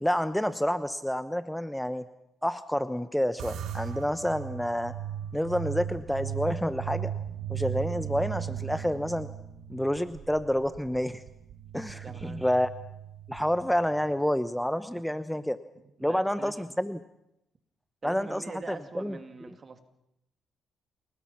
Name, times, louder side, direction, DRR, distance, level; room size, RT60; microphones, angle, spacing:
voice 1, 0.0-2.1 2.4-4.9 5.3-7.1 7.5-9.3 9.7-11.2 11.7-12.7 13.3-15.6 16.0-17.0 18.0-19.2, equal, 5° left, 12 dB, 0.9 m, -29 dB
sound 1, 3.4-14.0, right 10 dB, 85° right, 3.3 m, -37 dB
voice 2, 12.0-12.4 15.3-15.5 16.0-16.8 18.0-19.8, right 4 dB, 35° right, 8 dB, 2.6 m, -44 dB
28.5 x 20.0 x 5.9 m, 0.85 s
cardioid pair, 90°, 0 cm